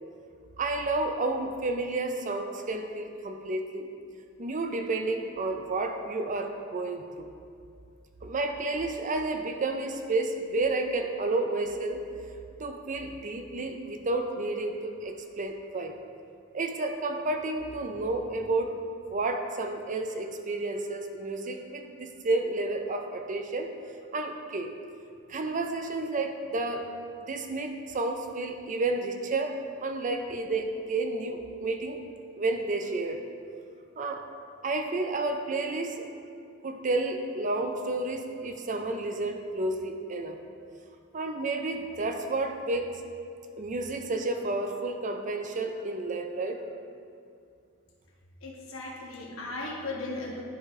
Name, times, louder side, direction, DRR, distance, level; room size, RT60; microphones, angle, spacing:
voice 1, 0.6-3.9 4.4-7.3 8.2-12.0 12.6-16.0 16.5-18.8 19.1-23.7 24.1-24.7 25.3-26.9 27.3-29.5 29.8-32.0 32.4-33.2 34.0-34.2 34.6-36.1 36.6-40.4 41.1-43.0 43.6-46.6, right 2 dB, 35° right, 5 dB, 0.5 m, -31 dB
voice 2, 48.4-50.4, left 2 dB, 70° left, -2 dB, 1.3 m, -37 dB
11.0 x 4.9 x 3.6 m, 2.3 s
head